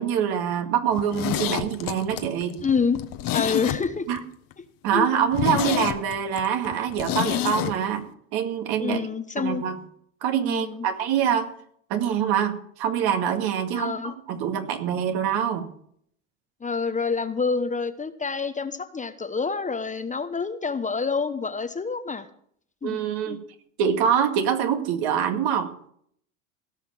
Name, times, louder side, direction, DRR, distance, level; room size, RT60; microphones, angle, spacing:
voice 1, 0.0-2.6 4.1-4.2 4.8-9.0 9.4-9.8 10.2-11.5 11.9-15.7 22.8-23.4 23.8-25.7, right 8 dB, 60° right, 7 dB, 2.2 m, -25 dB
Zipper (clothing), 0.9-4.2 4.5-4.6 4.9-5.0 5.3-7.7 8.0-8.1, left 13 dB, 55° left, 1.3 m, -28 dB
voice 2, 2.6-3.0 3.3-4.1 4.9-5.1 8.8-9.6 10.4-10.9 13.7-14.1 16.6-22.3 22.8-23.0 23.3-23.4, left 5 dB, 20° left, 10 dB, 1.0 m, -27 dB
17.0 x 5.7 x 8.6 m, 0.65 s
supercardioid pair, 95°, 41 cm